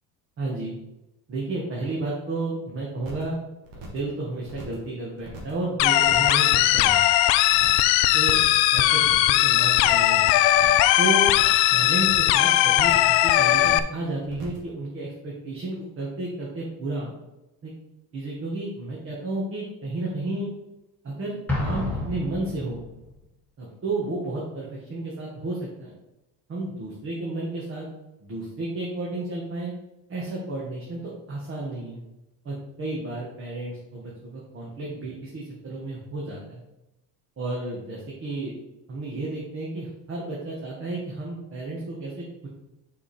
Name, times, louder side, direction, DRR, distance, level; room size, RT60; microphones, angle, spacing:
voice 1, 0.4-0.7 1.3-3.4 3.7-7.0 8.1-8.4 8.7-10.4 11.0-11.3 11.7-17.1 17.6-17.7 18.1-20.5 21.0-22.8 23.6-25.9 26.5-27.8 28.2-29.7 30.1-32.0 32.4-36.6 37.4-38.5 38.9-42.5, right 2 dB, 30° right, -5 dB, 1.7 m, -32 dB
sound 1, 3.0-3.3 3.6-4.1 4.4-4.9 5.2-5.6 5.9-6.4 6.7-7.1 7.4-7.9 8.2-8.7 9.0-9.4 9.7-10.1 10.4-10.9 11.2-11.7 12.0-12.4 12.7-13.2 13.5-13.9 14.2-14.7, right 2 dB, 85° right, 2.4 m, -42 dB
sound 2, 5.8-13.8, left 14 dB, 85° left, 0.6 m, -19 dB
Explosion, 21.5-23.1, left 2 dB, 5° left, 1.6 m, -30 dB
6.3 x 5.3 x 4.5 m, 0.96 s
cardioid pair, 140°, 42 cm